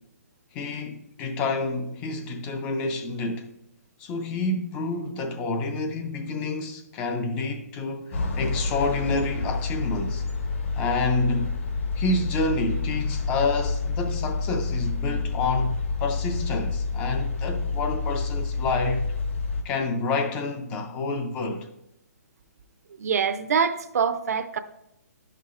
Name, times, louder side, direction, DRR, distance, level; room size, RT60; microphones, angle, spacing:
voice 1, 0.5-3.5 4.0-10.2 10.8-11.5 12.0-19.1 19.6-21.7, left 3 dB, 10° left, 0.3 m, -28 dB
sound 1, 8.1-19.6, left 4 dB, 45° left, 0.8 m, -28 dB
voice 2, 23.0-24.6, right 6 dB, 70° right, 0.5 m, -24 dB
10.5 x 5.7 x 2.4 m
hypercardioid pair, 170°, 9 cm